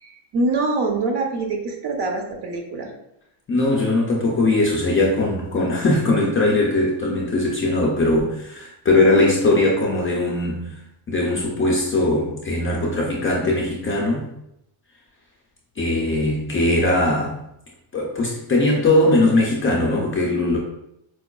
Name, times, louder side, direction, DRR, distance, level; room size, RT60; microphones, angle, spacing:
voice 1, 0.0-2.9, right 3 dB, 55° right, 2 dB, 0.7 m, -24 dB
voice 2, 3.5-10.8 11.1-14.3 15.8-17.4 17.9-20.6, left 2 dB, 30° left, -3 dB, 0.3 m, -20 dB
4.6 x 2.2 x 2.2 m, 0.80 s
cardioid pair, 145°, 50 cm